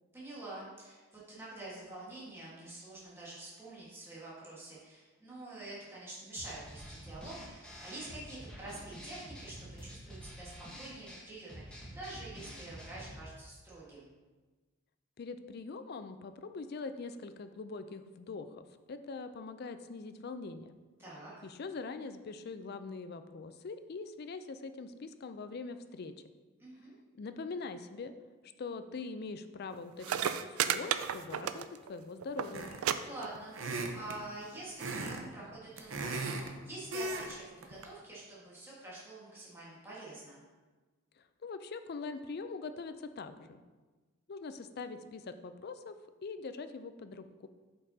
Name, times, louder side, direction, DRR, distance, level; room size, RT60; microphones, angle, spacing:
voice 1, 0.1-10.5 10.8-14.1 21.0-21.5 26.6-26.9 33.0-40.4, right 2 dB, 10° right, -8 dB, 1.5 m, -47 dB
sound 1, 6.4-13.2, equal, 5° left, 1.1 m, -48 dB
voice 2, 15.2-20.8 21.4-26.1 27.2-28.1 28.6-32.7 41.2-43.6 44.3-47.5, left 4 dB, 50° left, 10 dB, 0.4 m, -43 dB
sound 2, 29.7-29.8 30.0-31.9 32.2-32.5 32.8-32.9 33.2-33.7 34.6-34.7, right 9 dB, 90° right, 0.3 m, -32 dB
sound 3, 32.5-32.9 33.5-34.2 34.8-35.2 35.5-36.5 36.9-37.3 37.6-37.8, right 2 dB, 70° right, 0.7 m, -37 dB
8.5 x 5.4 x 2.7 m, 1.3 s
head